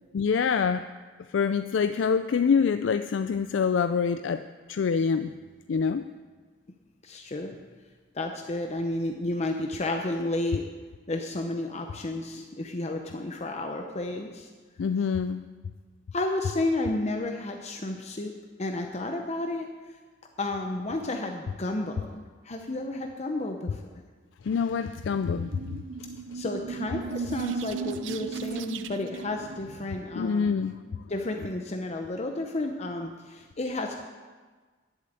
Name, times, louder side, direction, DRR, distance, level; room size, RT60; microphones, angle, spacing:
voice 1, 0.1-0.9 1.3-5.3 5.7-6.1 14.8-15.5 24.4-25.5 30.1-30.8, left 6 dB, 80° left, 11 dB, 0.4 m, -25 dB
voice 2, 7.0-7.6 8.1-10.6 11.1-14.5 16.1-18.3 18.6-19.7 20.4-23.8 26.3-30.6 31.1-34.1, left 2 dB, 35° left, 4 dB, 0.8 m, -32 dB
sound 1, 24.9-30.3, right 5 dB, 85° right, 0.5 m, -36 dB
11.0 x 7.7 x 8.1 m, 1.4 s
head